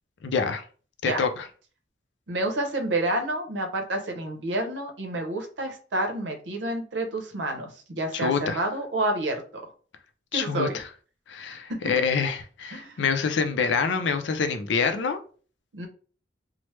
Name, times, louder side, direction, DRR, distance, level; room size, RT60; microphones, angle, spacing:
voice 1, 0.2-0.6 1.0-1.5 8.1-8.6 10.3-10.8 11.3-15.2, left 5 dB, 75° left, 0.4 m, -26 dB
voice 2, 2.3-9.6 10.3-10.8 11.7-11.9 12.7-13.0 15.7-15.9, right 1 dB, 75° right, 0.7 m, -29 dB
3.1 x 2.0 x 3.1 m
head